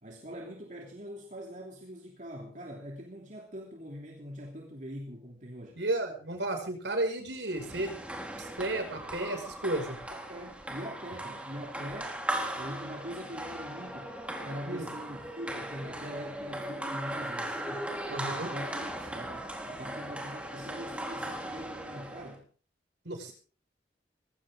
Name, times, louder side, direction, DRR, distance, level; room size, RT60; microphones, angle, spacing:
voice 1, 0.0-5.8 10.1-12.2 12.5-17.9 18.4-22.5 23.1-23.3, equal, 40° right, 3.0 m, -43 dB
voice 2, 5.8-7.9 8.4-10.0 14.7-14.9 18.1-18.5 23.0-23.3, right 1 dB, 70° right, 6.0 m, -33 dB
sound 1, 7.5-22.4, right 1 dB, 5° right, 3.8 m, -38 dB
20.0 x 18.0 x 3.8 m
head